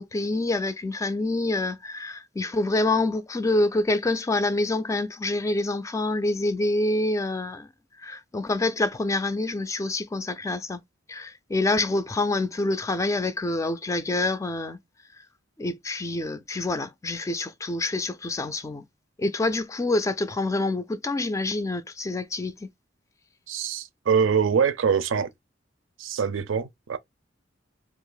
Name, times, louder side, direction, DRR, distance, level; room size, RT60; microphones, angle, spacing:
voice 1, 0.0-7.7 8.0-10.8 11.1-14.8 15.6-18.8 19.2-22.7, left 2 dB, 15° left, 0.3 m, -26 dB
voice 2, 23.5-25.3 26.0-27.0, right 6 dB, 80° right, 0.5 m, -24 dB
2.7 x 2.4 x 3.8 m
head